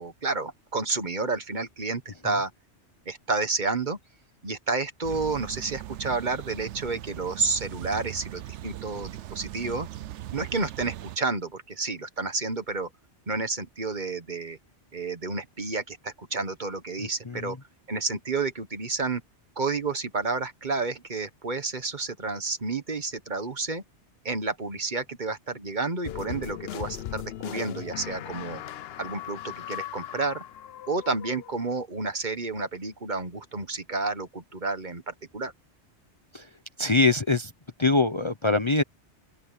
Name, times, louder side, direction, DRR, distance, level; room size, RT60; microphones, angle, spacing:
voice 1, 0.0-2.5 3.1-4.0 4.4-9.9 10.3-12.9 13.3-14.6 14.9-17.6 17.9-19.2 19.6-23.8 24.2-28.6 29.0-30.4 30.9-35.5, right 3 dB, 40° right, 1.5 m, -30 dB
sound 1, 5.0-11.2, right 13 dB, 80° right, 0.9 m, -39 dB
voice 2, 17.0-17.6 36.3-36.5 36.8-37.5 37.8-38.8, left 3 dB, 30° left, 0.8 m, -24 dB
sound 2, 26.0-31.7, left 12 dB, 65° left, 0.8 m, -38 dB
open air
omnidirectional pair, 1.2 m